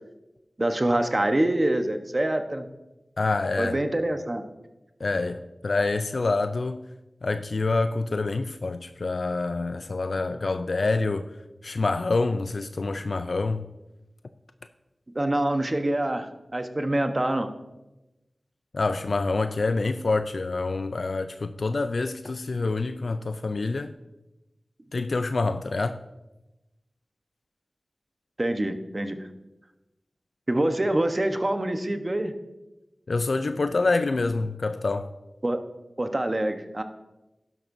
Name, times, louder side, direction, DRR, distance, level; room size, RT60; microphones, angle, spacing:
voice 1, 0.6-2.7 3.6-4.4 15.1-17.5 28.4-29.3 30.5-32.3 35.4-35.6 36.0-36.8, right 1 dB, 40° right, 1.0 m, -25 dB
voice 2, 3.2-3.7 5.0-6.8 7.2-11.3 11.6-13.7 18.7-23.9 24.9-26.0 33.1-35.1, left 3 dB, 75° left, 0.4 m, -26 dB
12.0 x 11.0 x 2.7 m
cardioid pair, 40°, 0 cm